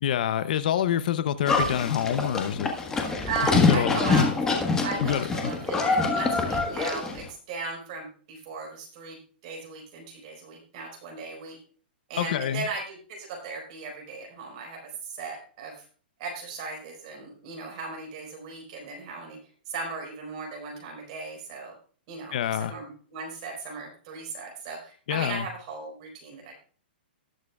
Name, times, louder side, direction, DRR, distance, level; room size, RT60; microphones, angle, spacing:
voice 1, 0.0-2.7 3.5-4.2 5.0-5.5 12.2-12.7 22.3-22.8 25.1-25.5, left 10 dB, 50° left, 13 dB, 0.6 m, -27 dB
Livestock farm animals working animals, 1.5-7.2, left 4 dB, 10° left, 1.3 m, -25 dB
voice 2, 3.2-4.3 4.8-11.6 12.1-14.8 15.2-15.9 16.2-19.4 19.7-21.7 22.1-26.6, right 4 dB, 35° right, 0 dB, 4.4 m, -37 dB
18.5 x 7.4 x 2.3 m, 0.42 s
hypercardioid pair, 165°, 6 cm